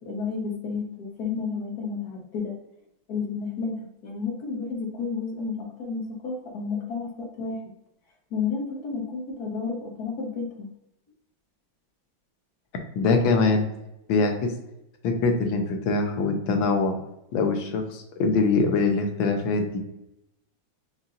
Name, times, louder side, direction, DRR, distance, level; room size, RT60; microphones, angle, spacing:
voice 1, 0.0-2.5 3.1-7.6 8.3-10.7, left 5 dB, 60° left, 0 dB, 1.3 m, -31 dB
voice 2, 13.0-13.7 14.1-14.5 15.0-17.0 17.3-19.8, left 3 dB, 80° left, 4 dB, 1.5 m, -23 dB
5.5 x 2.7 x 2.5 m, 0.85 s
omnidirectional pair, 2.2 m